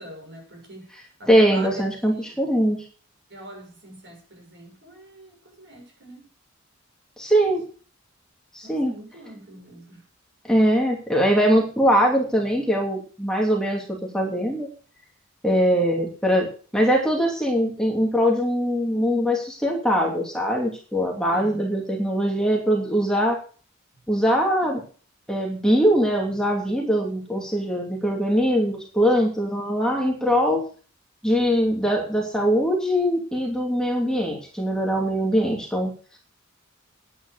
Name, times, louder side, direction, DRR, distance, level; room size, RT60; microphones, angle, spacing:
voice 1, 0.0-2.4 3.3-6.3 8.6-10.1 21.3-21.6, right 1 dB, 60° right, 2 dB, 6.6 m, -43 dB
voice 2, 1.3-2.8 7.2-7.6 8.5-8.9 10.4-13.8 14.1-14.7 15.4-16.5 16.7-23.4 24.1-24.8 25.3-30.6 31.2-35.9, equal, 5° left, -1 dB, 2.7 m, -22 dB
10.0 x 9.3 x 6.5 m, 0.40 s
head